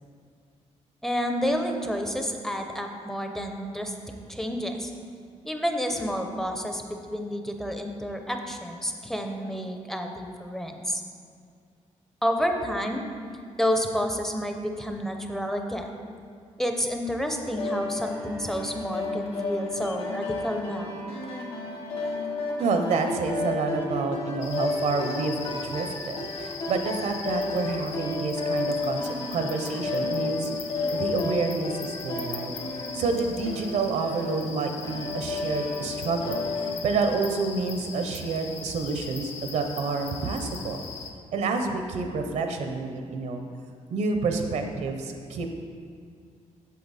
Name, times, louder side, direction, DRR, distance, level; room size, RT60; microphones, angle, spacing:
voice 1, 1.0-3.9 4.3-4.9 5.4-11.0 12.2-13.0 13.6-16.0 16.6-21.0, equal, 5° left, 4 dB, 0.5 m, -29 dB
sound 1, 17.6-36.7, left 3 dB, 50° left, 1.2 m, -32 dB
voice 2, 22.6-30.5 30.9-32.6 32.9-40.8 41.3-43.4 43.9-45.6, right 4 dB, 70° right, 5 dB, 0.7 m, -28 dB
sound 2, 24.4-41.1, left 5 dB, 65° left, 0.7 m, -40 dB
8.5 x 6.6 x 4.1 m, 2.2 s
cardioid pair, 160°, 12 cm